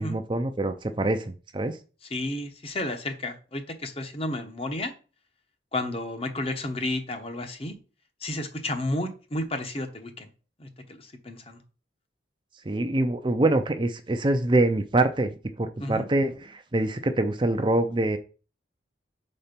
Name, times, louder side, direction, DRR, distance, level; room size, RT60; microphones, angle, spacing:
voice 1, 0.0-1.8 12.6-15.3 15.6-18.2, right 2 dB, 25° right, 8 dB, 0.5 m, -25 dB
voice 2, 2.1-4.9 5.7-7.8 8.2-10.3 10.6-11.6 15.8-16.1, left 1 dB, 30° left, 7 dB, 1.0 m, -32 dB
6.8 x 4.3 x 5.2 m, 0.36 s
head